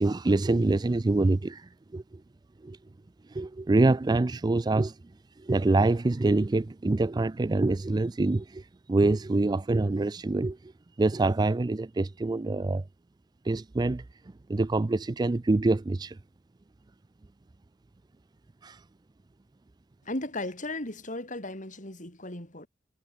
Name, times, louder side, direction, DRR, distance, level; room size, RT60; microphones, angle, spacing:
voice 1, 0.0-2.0 2.6-2.8 3.3-4.9 5.4-8.6 8.9-10.6 11.0-12.8 13.5-14.0 14.5-16.2 18.6-18.8, right 2 dB, 20° right, 0.4 m, -25 dB
voice 2, 20.0-22.7, left 2 dB, 45° left, 7.7 m, -36 dB
head